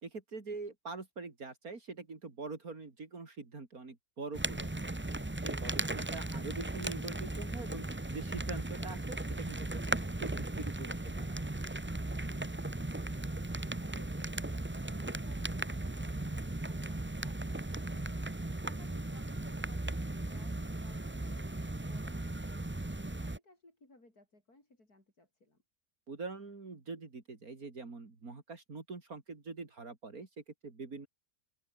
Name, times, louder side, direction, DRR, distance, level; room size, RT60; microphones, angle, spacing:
voice 1, 0.0-5.0 5.4-9.9 10.2-11.4 26.1-31.1, right 4 dB, 70° right, 3.6 m, -44 dB
sound 1, 4.3-23.4, right 2 dB, 10° right, 0.6 m, -37 dB
voice 2, 12.2-14.4 14.7-25.6, left 2 dB, 85° left, 7.6 m, -61 dB
open air
omnidirectional pair, 1.6 m